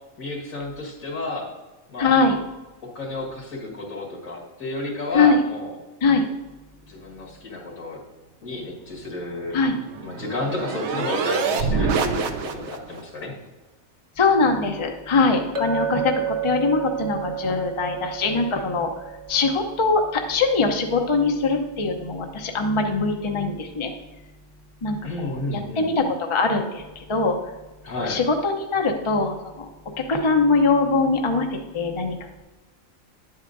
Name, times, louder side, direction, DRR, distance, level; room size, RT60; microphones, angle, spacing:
voice 1, 0.2-1.5 1.9-2.1 2.8-5.8 6.9-8.0 8.4-9.6 10.0-13.3 25.0-26.1 27.8-28.2, left 2 dB, 75° left, -3 dB, 2.5 m, -31 dB
voice 2, 2.0-2.4 5.1-5.4 6.0-6.3 9.5-9.8 14.2-18.9 19.3-23.9 24.8-27.4 27.9-29.7 30.0-31.5 31.7-32.1, left 4 dB, 30° left, 3 dB, 0.6 m, -22 dB
sound 1, 9.4-13.0, right 5 dB, 65° right, 0.9 m, -26 dB
Chink clink, 15.5-19.7, right 8 dB, 30° right, 1.0 m, -30 dB
10.5 x 8.1 x 2.6 m, 1.2 s
omnidirectional pair, 1.4 m